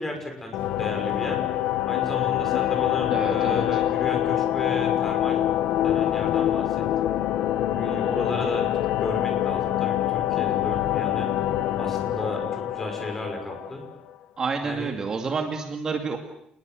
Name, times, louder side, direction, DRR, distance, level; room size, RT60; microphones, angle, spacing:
voice 1, 0.0-1.4 1.8-5.4 5.8-6.6 7.0-7.1 7.7-8.7 9.0-11.3 11.8-13.8 14.6-15.0, left 1 dB, 15° left, 4 dB, 6.2 m, -34 dB
sound 1, 0.5-14.1, left 12 dB, 80° left, 1.1 m, -25 dB
voice 2, 3.1-3.8 14.4-16.2, right 5 dB, 30° right, 3 dB, 2.3 m, -29 dB
28.0 x 21.5 x 7.8 m, 0.75 s
cardioid pair, 170°, 2 cm